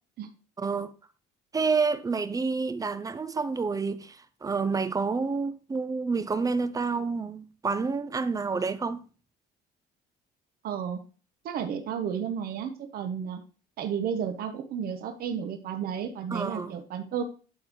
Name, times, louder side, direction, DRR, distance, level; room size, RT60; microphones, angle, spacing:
voice 1, 0.6-0.9 1.5-9.0 16.3-16.8, right 4 dB, 20° right, 0.5 m, -29 dB
voice 2, 10.6-11.0 11.4-13.4 13.8-17.2, right 8 dB, 65° right, 1.0 m, -32 dB
11.5 x 3.9 x 3.1 m
cardioid pair, 110°, 17 cm